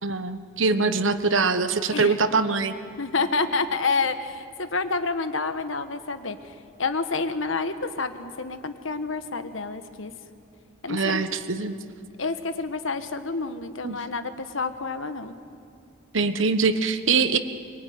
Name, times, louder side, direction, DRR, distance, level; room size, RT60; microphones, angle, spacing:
voice 1, 0.0-2.7 10.9-11.7 13.8-14.0 16.1-17.4, right 4 dB, 75° right, 10 dB, 1.3 m, -23 dB
voice 2, 3.0-6.4 6.8-10.1 10.8-11.3 12.2-15.4, left 4 dB, 75° left, 9 dB, 1.4 m, -28 dB
23.5 x 22.5 x 9.5 m, 2.3 s
head